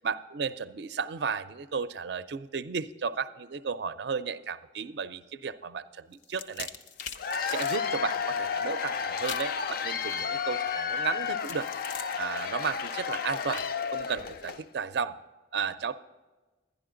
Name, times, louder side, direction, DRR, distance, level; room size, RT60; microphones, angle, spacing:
voice 1, 0.0-6.7 7.5-11.7 12.2-15.2 15.5-15.9, right 5 dB, 65° right, 13 dB, 0.4 m, -34 dB
sound 1, 6.1-7.8 9.2-9.6 11.4-14.5, left 6 dB, 80° left, 0.8 m, -43 dB
Cheering / Applause / Crowd, 7.0-14.6, left 6 dB, 50° left, 0.4 m, -32 dB
11.5 x 11.0 x 3.8 m, 1.2 s
head